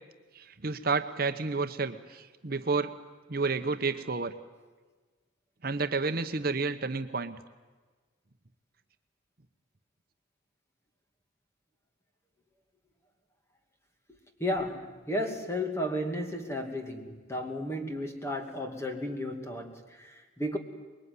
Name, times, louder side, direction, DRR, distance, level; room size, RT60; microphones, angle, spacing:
voice 1, 0.3-2.9 3.3-4.3 5.6-7.4, right 4 dB, 50° right, 8 dB, 0.9 m, -30 dB
voice 2, 14.4-20.6, left 1 dB, 15° left, 4 dB, 2.5 m, -33 dB
25.0 x 21.5 x 9.7 m, 1.3 s
head